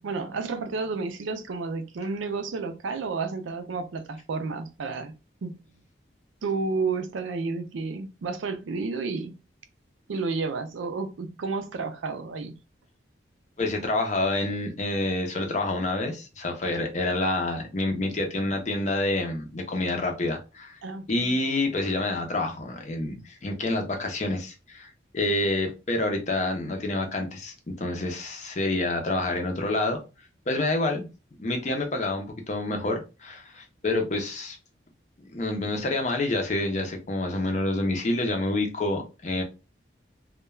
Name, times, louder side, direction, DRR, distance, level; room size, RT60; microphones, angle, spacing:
voice 1, 0.0-5.1 5.4-5.6 6.4-9.3 10.1-12.5 20.8-21.4, right 4 dB, 90° right, 0.4 m, -31 dB
voice 2, 13.6-20.8 21.1-30.0 30.5-31.1 31.4-34.6 35.2-39.4, left 2 dB, 40° left, 0.5 m, -28 dB
2.2 x 2.2 x 3.1 m
head